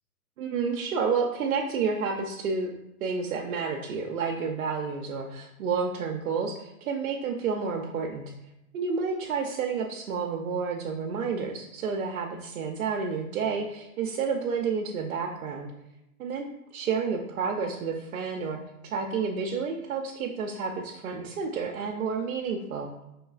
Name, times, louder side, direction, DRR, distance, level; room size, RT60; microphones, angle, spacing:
voice 1, 0.4-2.7 3.0-8.2 8.7-15.7 16.2-16.5 16.7-22.9, right 5 dB, 65° right, 1 dB, 0.6 m, -30 dB
5.2 x 3.2 x 2.4 m, 0.87 s
hypercardioid pair, 160°, 46 cm